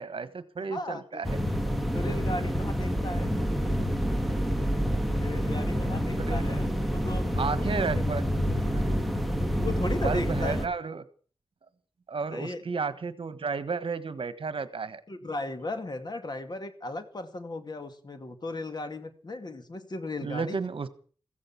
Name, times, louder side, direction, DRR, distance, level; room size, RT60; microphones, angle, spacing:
voice 1, 0.0-1.4 5.8-6.5 7.4-8.2 8.7-8.8 10.0-11.0 12.1-15.0 20.2-20.9, right 4 dB, 60° right, 12 dB, 1.4 m, -32 dB
voice 2, 0.6-1.2 1.9-3.3 5.2-7.7 9.4-10.7 12.3-12.6 15.1-20.6, left 2 dB, 45° left, 8 dB, 2.3 m, -36 dB
sound 1, 1.2-10.7, equal, ahead, 2.0 m, -28 dB
15.5 x 15.0 x 6.0 m, 0.42 s
wide cardioid pair, 75°, 10 cm